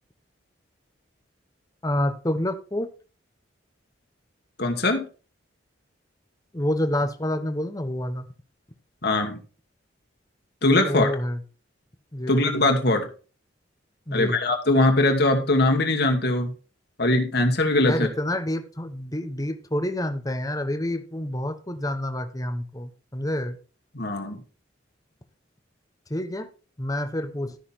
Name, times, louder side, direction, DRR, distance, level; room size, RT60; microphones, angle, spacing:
voice 1, 1.8-2.9 6.5-8.3 10.8-11.4 12.1-12.4 14.1-14.4 17.8-23.6 26.1-26.5 26.8-27.5, left 1 dB, 20° left, 9 dB, 1.1 m, -28 dB
voice 2, 4.6-5.0 9.0-9.4 10.6-11.1 12.3-13.1 14.1-16.5 17.0-18.1 23.9-24.4, left 2 dB, 55° left, 3 dB, 2.4 m, -21 dB
13.0 x 6.8 x 4.4 m, 0.36 s
head